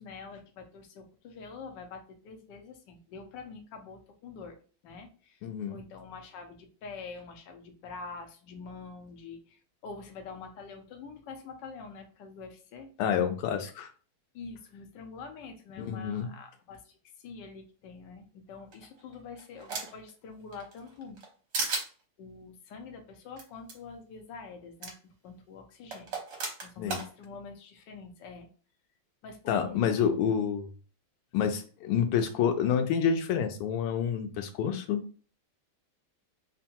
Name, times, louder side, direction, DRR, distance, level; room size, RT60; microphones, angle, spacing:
voice 1, 0.0-4.6 4.8-5.4 5.7-12.9 14.3-16.8 17.2-21.2 22.2-24.9 25.2-26.2 26.6-28.5 29.2-30.2, left 4 dB, 65° left, 4 dB, 1.2 m, -45 dB
voice 2, 5.4-5.8 13.0-13.9 15.8-16.3 26.8-27.0 29.5-30.7 31.3-35.0, left 7 dB, 85° left, 7 dB, 1.5 m, -28 dB
sound 1, 18.7-20.1 20.5-21.3 21.5-21.9 23.4-23.5 23.7-23.8 24.8-24.9 25.9-27.1, right 3 dB, 55° right, 1.5 m, -34 dB
3.7 x 2.2 x 4.3 m, 0.38 s
omnidirectional pair, 2.4 m